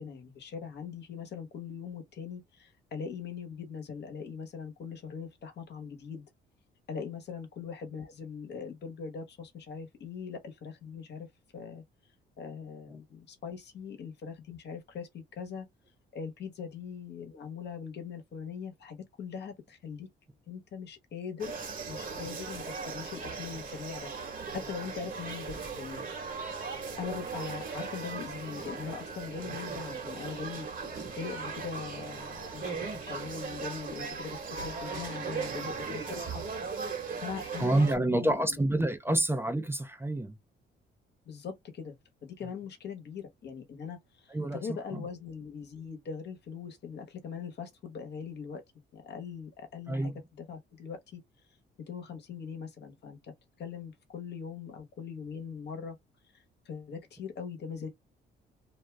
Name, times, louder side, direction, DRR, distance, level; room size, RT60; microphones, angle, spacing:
voice 1, 0.0-6.2 6.9-11.3 11.5-11.8 12.4-15.7 16.1-20.1 20.5-21.6 21.9-24.1 24.5-26.0 27.0-30.7 31.1-36.4 37.2-38.6 39.1-39.2 41.3-42.0 42.2-48.6 48.9-51.2 51.9-53.3 53.6-55.9 56.3-57.9, left 6 dB, 60° left, 1.1 m, -41 dB
sound 1, 21.4-38.0, right 5 dB, 45° right, 1.2 m, -38 dB
voice 2, 37.6-40.4 44.3-44.6 44.9-45.1 49.9-50.1, right 1 dB, 10° right, 0.6 m, -28 dB
2.6 x 2.3 x 3.2 m
cardioid pair, 90°, 20 cm